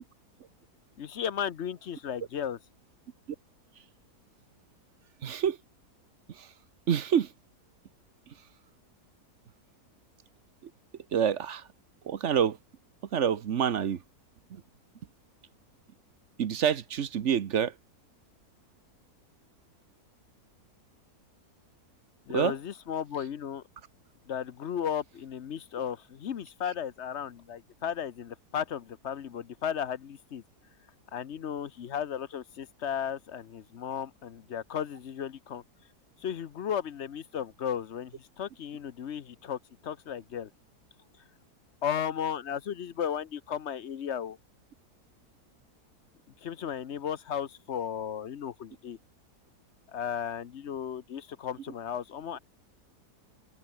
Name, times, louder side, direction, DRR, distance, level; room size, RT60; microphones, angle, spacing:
voice 1, 1.0-2.6 22.3-23.6 24.3-30.4 31.1-35.6 36.2-40.5 41.8-44.4 46.4-49.0 49.9-52.4, left 8 dB, 50° left, 1.0 m, -35 dB
voice 2, 5.2-5.6 6.3-6.5 6.9-7.3 8.3-8.4 10.6-10.7 11.1-11.7 12.0-12.6 13.1-14.0 14.5-14.6 16.4-17.7 22.3-22.6, right 8 dB, 50° right, 1.1 m, -27 dB
omnidirectional pair, 1.7 m